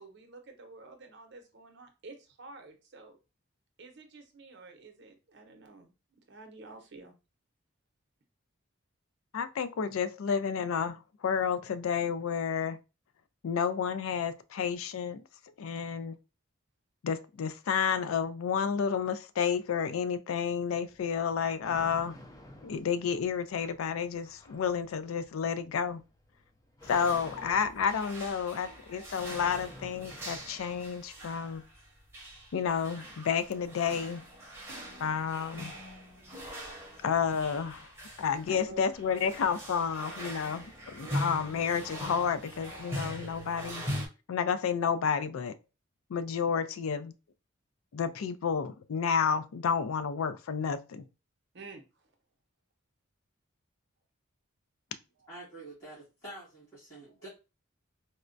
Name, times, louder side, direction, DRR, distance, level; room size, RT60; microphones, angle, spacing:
voice 1, 0.0-3.2 3.8-5.9 6.3-7.1 38.5-38.8 39.7-40.1 51.5-52.1 55.2-55.3, right 3 dB, 55° right, 0.7 m, -50 dB
voice 2, 9.3-12.8 13.4-15.2 15.6-16.2 17.0-22.2 22.6-26.0 26.9-31.6 32.5-34.2 35.0-35.7 37.0-37.9 38.2-43.8 44.3-45.5 46.1-47.1 47.9-51.0, left 6 dB, 80° left, 0.4 m, -31 dB
sound 1, 20.5-30.9, left 1 dB, 15° left, 0.5 m, -53 dB
sound 2, 26.8-44.1, equal, 10° right, 0.8 m, -42 dB
voice 3, 55.3-57.3, right 1 dB, 35° left, 1.8 m, -47 dB
4.1 x 2.2 x 2.5 m
head